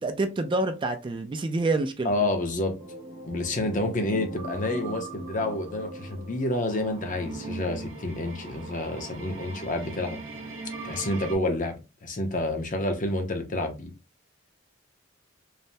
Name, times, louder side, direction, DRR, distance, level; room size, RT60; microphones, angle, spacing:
voice 1, 0.0-2.1, right 2 dB, 25° right, 0.3 m, -27 dB
voice 2, 2.0-2.7 3.3-10.2 10.8-11.8 12.0-13.9, left 2 dB, 40° left, 0.6 m, -29 dB
sound 1, 2.8-11.4, right 3 dB, 90° right, 0.7 m, -40 dB
3.2 x 2.0 x 2.6 m
head